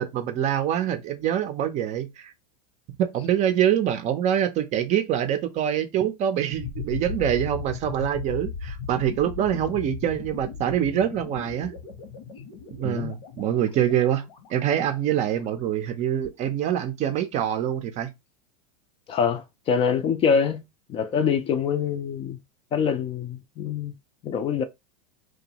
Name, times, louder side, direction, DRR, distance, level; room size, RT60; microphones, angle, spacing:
voice 1, 0.0-2.3 3.0-11.7 12.8-14.2 14.5-18.1, right 10 dB, 35° right, 0.5 m, -25 dB
sound 1, 6.5-15.4, left 6 dB, 80° left, 1.0 m, -37 dB
voice 2, 19.1-20.6 20.9-22.4 22.7-23.9 24.2-24.6, left 6 dB, 30° left, 0.4 m, -25 dB
2.6 x 2.3 x 2.8 m
supercardioid pair, 120°, 20 cm